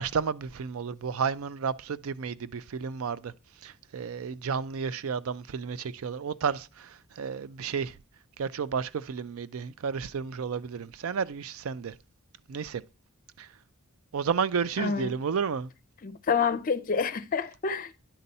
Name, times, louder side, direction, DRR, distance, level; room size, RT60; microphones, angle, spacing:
voice 1, 0.0-8.0 8.4-12.0 12.5-12.8 13.4-13.6 14.1-15.7, right 6 dB, 65° right, 0.4 m, -32 dB
voice 2, 14.8-15.1 16.0-17.9, left 5 dB, 40° left, 0.5 m, -28 dB
10.0 x 4.1 x 5.3 m
head